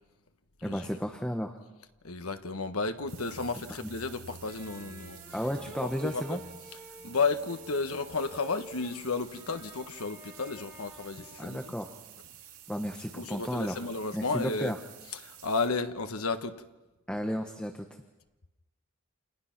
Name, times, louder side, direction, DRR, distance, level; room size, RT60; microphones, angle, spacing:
voice 1, 0.6-1.6 5.3-6.4 11.4-11.9 12.7-13.8 14.1-14.8 17.1-17.9, equal, 5° left, 1.2 m, -33 dB
voice 2, 2.0-5.2 5.8-6.4 7.0-11.7 13.1-14.7 15.2-16.6, left 4 dB, 85° left, 1.4 m, -33 dB
sound 1, 2.9-10.6, right 1 dB, 55° right, 5.0 m, -55 dB
sound 2, 3.1-15.7, right 10 dB, 85° right, 2.4 m, -51 dB
sound 3, 4.4-11.9, equal, 20° right, 5.5 m, -51 dB
29.5 x 27.5 x 6.0 m
head